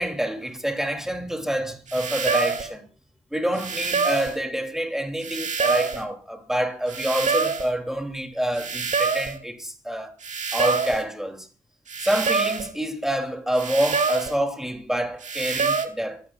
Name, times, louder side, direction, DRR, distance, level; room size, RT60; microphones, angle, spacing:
voice 1, 0.0-2.9 3.3-10.1 10.5-11.5 12.0-16.2, right 1 dB, 5° right, 2.8 m, -27 dB
sound 1, 1.9-2.7 3.6-4.4 5.2-6.0 6.9-7.7 8.6-9.4 10.2-11.0 11.9-12.7 13.5-14.4 15.2-15.9, right 5 dB, 60° right, 2.4 m, -26 dB
23.5 x 15.5 x 2.4 m
wide cardioid pair, 150°, 14 cm